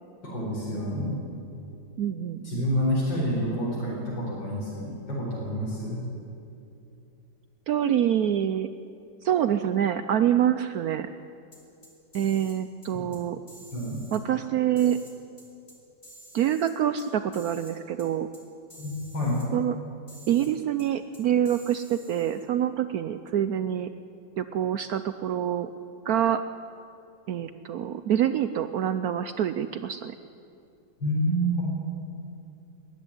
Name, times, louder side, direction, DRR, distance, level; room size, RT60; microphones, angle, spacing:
voice 1, 0.2-1.2 2.4-6.0 12.9-13.0 13.7-14.1 18.8-19.5 31.0-31.6, equal, 85° left, -5 dB, 5.4 m, -28 dB
voice 2, 2.0-2.6 7.7-8.7 9.2-11.1 12.1-13.4 14.1-15.0 16.3-18.3 19.5-19.8 20.3-23.9 24.4-25.7 26.1-26.4 27.3-30.2, right 10 dB, 70° right, 11 dB, 1.0 m, -26 dB
sound 1, 11.5-12.6 12.8-13.2 13.5-14.2 14.8-15.8 16.0-17.1 17.3-17.7 18.0-18.1 18.3-18.4 18.7-19.5 20.1-20.5 20.8-20.9 21.1-22.5, right 1 dB, 25° left, 3.3 m, -50 dB
19.0 x 14.0 x 10.0 m, 2.6 s
omnidirectional pair, 1.9 m